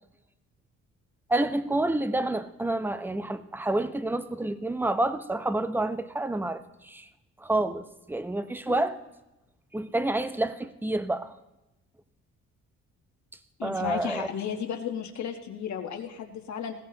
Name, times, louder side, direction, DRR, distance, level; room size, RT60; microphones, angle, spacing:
voice 1, 1.3-7.1 7.4-9.0 9.7-11.4 13.6-14.3, right 2 dB, 5° right, 11 dB, 0.7 m, -28 dB
voice 2, 13.6-16.7, left 8 dB, 65° left, 4 dB, 1.4 m, -34 dB
20.0 x 16.0 x 2.9 m, 0.99 s
cardioid pair, 90°, 30 cm